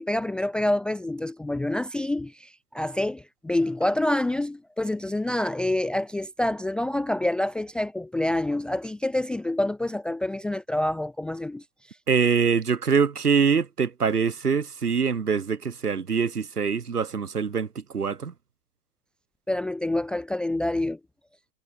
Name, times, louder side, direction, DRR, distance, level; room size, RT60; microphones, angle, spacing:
voice 1, 0.0-11.6 19.5-21.0, left 1 dB, ahead, 0.8 m, -27 dB
voice 2, 12.1-18.3, right 6 dB, 65° right, 5.9 m, -24 dB
figure-of-eight pair, 120°, 49 cm